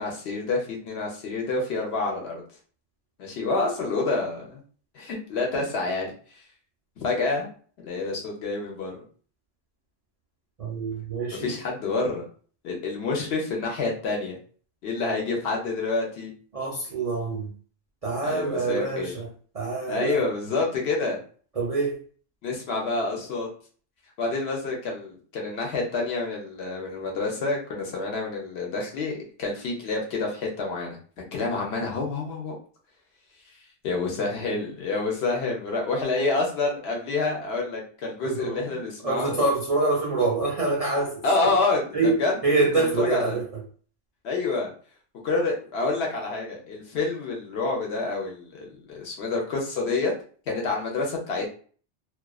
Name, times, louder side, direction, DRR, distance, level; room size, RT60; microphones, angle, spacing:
voice 1, 0.0-2.4 3.2-4.6 4.9-6.4 7.0-7.5 7.8-9.0 11.3-12.3 12.6-14.4 14.8-16.3 18.2-19.1 19.9-21.2 22.4-23.5 24.2-31.0 31.3-32.5 33.8-39.4 41.2-42.3 42.7-43.4 44.2-44.7 45.2-50.1 50.5-51.5, left 3 dB, 65° left, -1 dB, 0.9 m, -28 dB
voice 2, 10.6-11.5 16.5-17.5 18.0-20.2 21.6-22.0 38.2-41.6 41.9-43.6, right 3 dB, 60° right, -2 dB, 0.4 m, -26 dB
2.4 x 2.2 x 2.3 m, 0.43 s
omnidirectional pair, 1.2 m